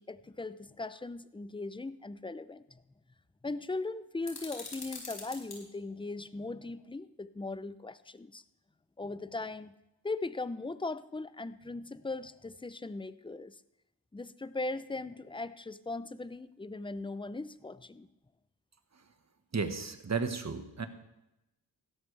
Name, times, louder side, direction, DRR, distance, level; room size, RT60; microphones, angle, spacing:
voice 1, 0.0-2.8 3.4-8.4 9.0-9.7 10.0-13.6 14.1-18.1, left 3 dB, 10° left, 14 dB, 0.6 m, -39 dB
sound 1, 4.2-5.6, left 3 dB, 60° left, 4.2 m, -44 dB
voice 2, 19.5-20.9, right 5 dB, 40° right, 8 dB, 1.5 m, -33 dB
16.5 x 13.0 x 3.4 m, 0.91 s
cardioid pair, 65°, 42 cm